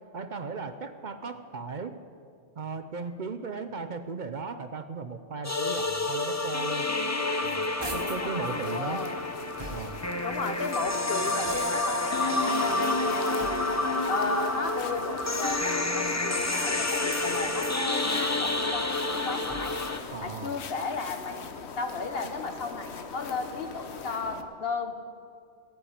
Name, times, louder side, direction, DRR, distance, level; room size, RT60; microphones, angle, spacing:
voice 1, 0.1-2.0 2.6-6.9 7.3-9.0 9.7-10.0 20.1-20.6, right 4 dB, 50° right, 9 dB, 0.8 m, -37 dB
sound 1, 5.4-20.0, left 2 dB, 15° left, 0.7 m, -29 dB
sound 2, 7.2-8.3 8.9-10.2 10.8-12.0 12.6-13.9 14.8-15.8 16.5-17.9 18.3-19.9, right 2 dB, 25° right, 1.0 m, -45 dB
sound 3, 8.0-24.4, left 5 dB, 85° left, 1.2 m, -42 dB
voice 2, 8.0-9.2 10.2-13.7 14.1-19.8 20.2-24.9, left 3 dB, 65° left, 6 dB, 1.4 m, -35 dB
14.5 x 9.3 x 8.8 m, 2.2 s
omnidirectional pair, 1.1 m